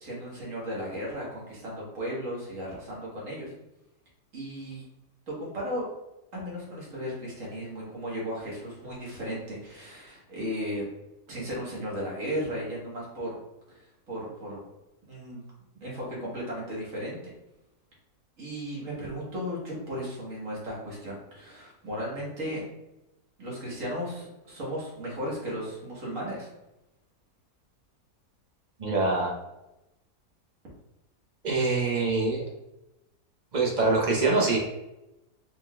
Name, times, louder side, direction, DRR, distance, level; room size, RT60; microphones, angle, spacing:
voice 1, 0.0-3.5 4.3-4.8 5.3-5.8 6.3-10.9 11.3-13.3 13.7-13.8 14.1-14.6 15.1-15.4 15.8-17.2 18.4-22.6 23.4-26.5, equal, 55° right, -5 dB, 1.8 m, -35 dB
voice 2, 28.8-29.4 31.4-32.5 33.5-34.6, right 3 dB, 35° right, -2 dB, 0.8 m, -24 dB
5.1 x 3.7 x 2.3 m, 0.92 s
omnidirectional pair, 1.6 m